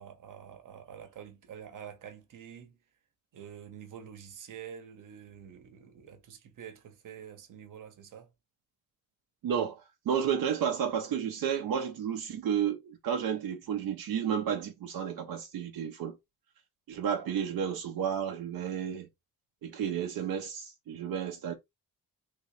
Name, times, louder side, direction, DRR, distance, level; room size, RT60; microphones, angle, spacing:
voice 1, 0.0-2.8 3.3-8.3, right 8 dB, 65° right, 0.9 m, -47 dB
voice 2, 9.4-16.2 16.9-19.1 19.6-21.5, right 8 dB, 80° right, 0.6 m, -32 dB
3.6 x 2.9 x 3.1 m
wide cardioid pair, 170°, 34 cm